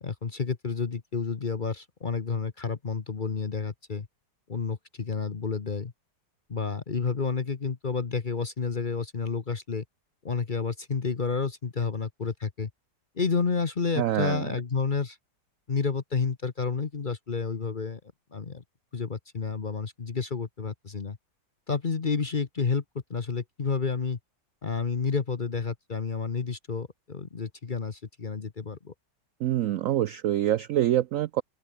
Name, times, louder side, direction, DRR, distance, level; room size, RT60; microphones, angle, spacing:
voice 1, 0.0-4.1 4.5-5.9 6.5-9.8 10.2-12.7 13.1-15.2 15.7-18.0 18.3-18.6 18.9-21.2 21.7-22.8 23.1-24.2 24.6-28.9, left 5 dB, 35° left, 1.0 m, -30 dB
voice 2, 14.0-14.5 29.4-31.4, right 12 dB, 70° right, 0.7 m, -25 dB
open air
omnidirectional pair, 1.9 m